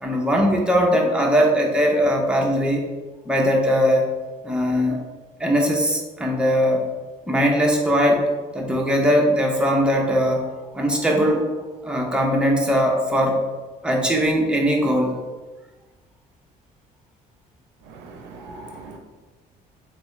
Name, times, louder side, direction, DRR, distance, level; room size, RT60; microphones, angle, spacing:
voice 1, 0.0-2.9 3.3-4.1 4.4-5.0 5.4-6.8 7.3-8.3 8.5-10.4 10.7-11.5 11.8-13.4 13.8-15.1 18.4-18.8, equal, 5° right, -1 dB, 0.7 m, -20 dB
voice 2, 17.9-19.0, right 4 dB, 90° right, 4 dB, 0.5 m, -41 dB
3.4 x 3.3 x 3.1 m, 1.3 s
cardioid pair, 110°, 17 cm